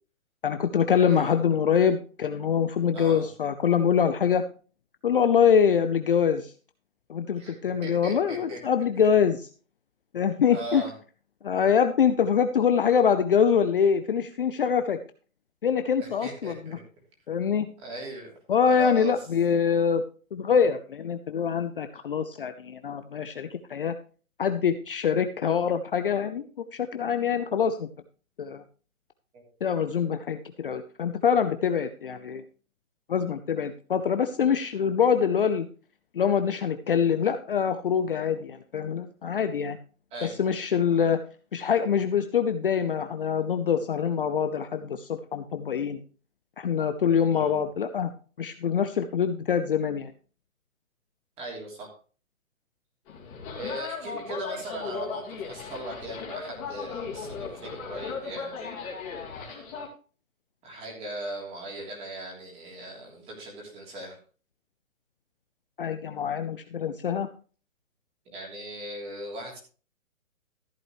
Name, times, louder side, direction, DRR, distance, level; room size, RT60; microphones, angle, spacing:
voice 1, 0.4-4.4 5.0-6.5 7.1-9.5 10.1-10.8 11.4-15.0 15.6-16.8 17.3-17.7 18.5-20.0 20.3-24.0 24.4-26.4 26.7-27.9 28.4-28.6 29.6-32.4 33.1-35.7 36.1-39.8 40.2-41.2 41.5-46.0 46.6-48.1 48.4-50.1 65.8-67.3, left 7 dB, 40° left, 9 dB, 0.7 m, -24 dB
voice 2, 0.9-1.3 2.9-3.3 7.4-7.5 7.8-8.6 10.5-10.9 16.0-16.8 17.8-18.3 18.7-19.1 29.3-29.5 40.1-40.4 47.3-47.5 51.4-51.9 53.5-59.7 60.6-64.2 68.2-69.6, right 1 dB, 15° right, -1 dB, 3.2 m, -39 dB
sound 1, 53.1-59.9, left 5 dB, 25° left, 2.7 m, -37 dB
14.0 x 8.7 x 3.1 m, 0.38 s
hypercardioid pair, 155°, 42 cm